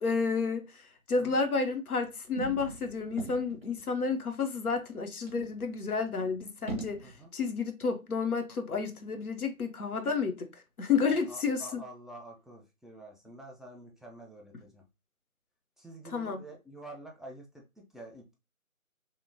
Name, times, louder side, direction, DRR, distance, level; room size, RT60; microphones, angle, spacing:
voice 1, 0.0-10.5 10.8-11.8 16.1-16.4, left 4 dB, 85° left, 0.7 m, -31 dB
sound 1, 2.0-3.8 4.3-4.4 4.6-4.8 5.3-7.2, right 4 dB, 45° left, 0.6 m, -42 dB
voice 2, 11.0-14.9 15.8-18.3, right 2 dB, ahead, 0.4 m, -48 dB
2.8 x 2.1 x 2.6 m
figure-of-eight pair, 175°, 43 cm